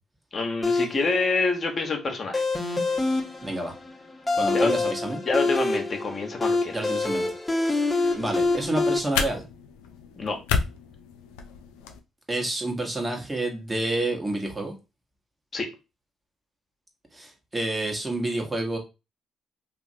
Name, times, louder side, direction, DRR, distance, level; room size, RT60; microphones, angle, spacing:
voice 1, 0.3-2.4 4.5-4.8 5.2-7.0 10.2-10.4 15.5-15.7, left 3 dB, 45° left, 2 dB, 0.9 m, -27 dB
sound 1, 0.6-9.0, left 3 dB, 15° left, 1.0 m, -26 dB
voice 2, 3.4-3.7 4.3-5.2 6.7-7.9 8.1-9.4 12.3-14.7 17.1-18.8, right 2 dB, 20° right, 2 dB, 1.1 m, -29 dB
sound 2, 8.0-12.0, left 6 dB, 85° left, 0.4 m, -32 dB
2.9 x 2.4 x 2.7 m, 0.26 s
hypercardioid pair, 55°, 0 cm